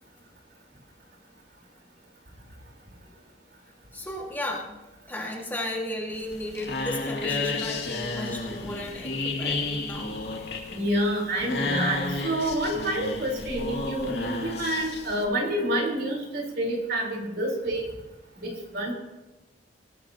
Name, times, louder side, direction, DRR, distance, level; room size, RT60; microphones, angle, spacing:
voice 1, 3.9-4.7 5.1-10.2, left 1 dB, 10° left, -2 dB, 1.9 m, -34 dB
sound 1, 6.1-15.2, left 3 dB, 70° left, 2.4 m, -32 dB
voice 2, 10.7-17.9 18.4-18.9, right 1 dB, 60° right, -1 dB, 4.2 m, -28 dB
20.0 x 15.0 x 2.9 m, 1.1 s
head